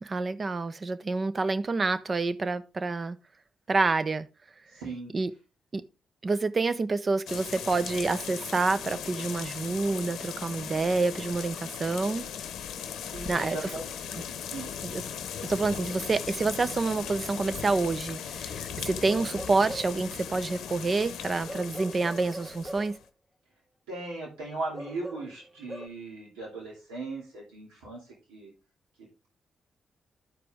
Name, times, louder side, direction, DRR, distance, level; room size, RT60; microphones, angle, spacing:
voice 1, 0.0-3.2 3.7-4.3 5.1-5.3 5.7-5.8 6.2-12.2 13.3-13.6 15.5-23.0, right 3 dB, 45° right, 0.8 m, -28 dB
voice 2, 4.7-5.1 13.0-13.9 14.4-14.7 23.9-28.5 29.0-29.3, right 2 dB, 90° right, 2.7 m, -38 dB
sound 1, 7.3-23.0, left 8 dB, 75° left, 0.7 m, -38 dB
Bark / Livestock farm animals working animals, 19.1-20.1 21.5-23.0 24.7-25.9, right 1 dB, 15° right, 2.4 m, -41 dB
12.5 x 4.9 x 3.6 m
hypercardioid pair, 40°, 0 cm